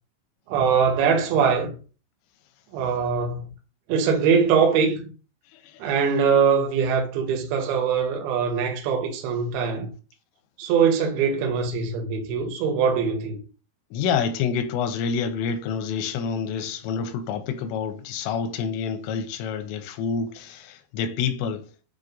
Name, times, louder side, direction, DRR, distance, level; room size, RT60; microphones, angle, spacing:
voice 1, 0.5-1.7 2.7-3.5 3.9-5.1 5.8-9.9 10.6-13.4, right 6 dB, 75° right, 2.5 m, -22 dB
voice 2, 13.9-21.7, left 6 dB, 85° left, 2.8 m, -27 dB
7.3 x 2.4 x 2.6 m
omnidirectional pair, 5.2 m